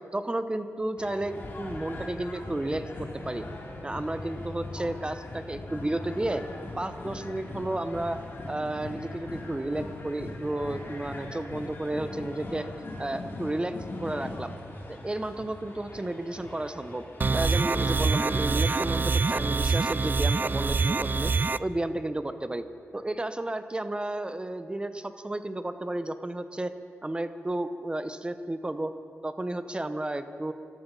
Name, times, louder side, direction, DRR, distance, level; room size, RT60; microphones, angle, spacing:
voice 1, 0.1-3.4 3.8-6.4 6.8-8.2 8.5-12.7 13.0-14.5 14.9-17.0 17.3-21.3 21.6-22.6 22.9-26.7 27.0-28.9 29.2-30.5, right 1 dB, 20° right, 10 dB, 0.9 m, -32 dB
sound 1, 1.0-18.8, left 2 dB, 45° left, 2.9 m, -40 dB
sound 2, 17.2-21.6, right 4 dB, 35° right, 0.4 m, -25 dB
17.5 x 13.0 x 5.5 m, 2.2 s
cardioid pair, 80°, 5 cm